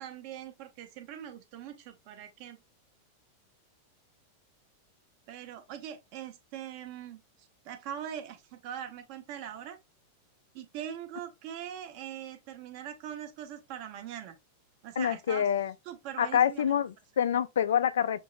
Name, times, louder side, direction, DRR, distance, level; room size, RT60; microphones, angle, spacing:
voice 1, 0.0-2.6 5.3-7.2 7.6-9.8 10.5-14.4 14.8-15.5 15.8-16.7, right 10 dB, 45° right, 1.0 m, -42 dB
voice 2, 15.0-15.7 16.2-18.2, left 9 dB, 65° left, 0.4 m, -26 dB
6.4 x 2.9 x 2.4 m
figure-of-eight pair, 90°, 0 cm